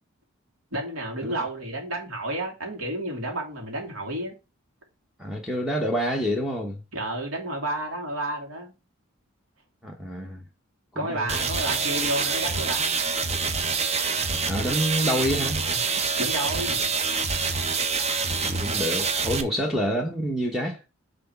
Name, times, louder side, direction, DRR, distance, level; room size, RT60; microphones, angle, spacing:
voice 1, 0.7-4.3 6.9-8.7 11.0-13.0 16.2-16.8, right 1 dB, 90° right, 2.6 m, -31 dB
voice 2, 5.2-6.8 9.8-10.4 10.9-11.4 14.4-15.6 18.4-20.8, equal, ahead, 0.9 m, -27 dB
sound 1, 11.3-19.4, right 4 dB, 30° right, 0.7 m, -26 dB
6.1 x 3.9 x 5.8 m
head